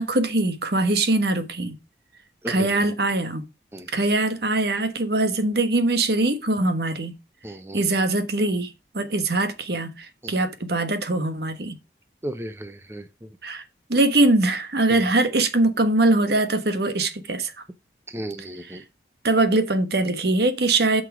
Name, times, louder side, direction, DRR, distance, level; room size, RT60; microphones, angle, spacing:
voice 1, 0.0-1.8 2.5-3.4 3.9-7.2 7.7-11.8 13.4-13.6 13.9-17.5 18.4-18.8 19.2-21.0, right 2 dB, 65° right, 1.3 m, -22 dB
voice 2, 3.7-4.0 7.4-7.8 10.2-10.3 12.2-13.1 14.9-15.0 18.1-18.8, right 1 dB, 15° right, 0.6 m, -34 dB
8.0 x 5.9 x 5.0 m
head